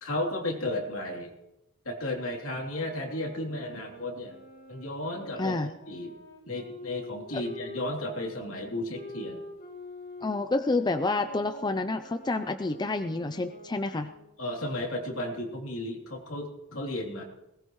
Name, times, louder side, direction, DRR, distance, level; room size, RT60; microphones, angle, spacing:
voice 1, 0.0-1.3 1.8-4.3 4.7-5.6 5.9-6.1 6.5-9.4 14.4-17.2, left 1 dB, 65° left, 0 dB, 3.3 m, -34 dB
sound 1, 2.7-8.2 8.9-14.4, left 2 dB, 45° left, 4.8 m, -45 dB
voice 2, 5.4-5.7 10.2-14.1, left 2 dB, 20° left, 8 dB, 0.5 m, -29 dB
20.5 x 19.0 x 3.1 m, 0.92 s
head